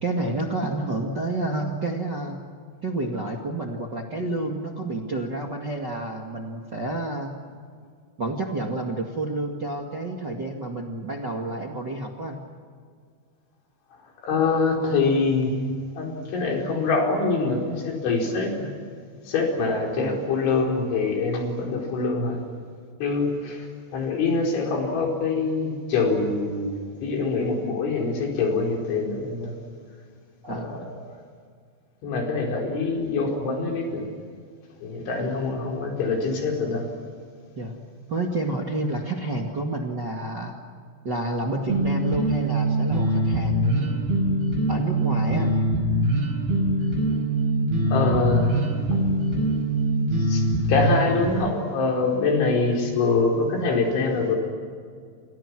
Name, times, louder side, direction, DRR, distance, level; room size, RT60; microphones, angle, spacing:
voice 1, 0.0-2.4 2.8-7.3 8.2-12.4 20.0-20.2 30.4-30.8 35.2-35.4 37.5-37.8 38.1-40.5 41.0-44.1 44.7-45.5, right 2 dB, 35° right, 0 dB, 1.8 m, -29 dB
voice 2, 14.2-15.5 16.0-18.7 19.3-22.4 23.0-23.7 23.9-29.5 30.5-30.8 32.0-34.0 34.8-36.8 47.9-48.6 50.3-50.4 50.7-54.4, left 3 dB, 80° left, 1 dB, 7.0 m, -24 dB
sound 1, 41.7-51.3, right 1 dB, 60° right, 7.2 m, -23 dB
30.0 x 27.5 x 6.2 m, 2.1 s
omnidirectional pair, 5.3 m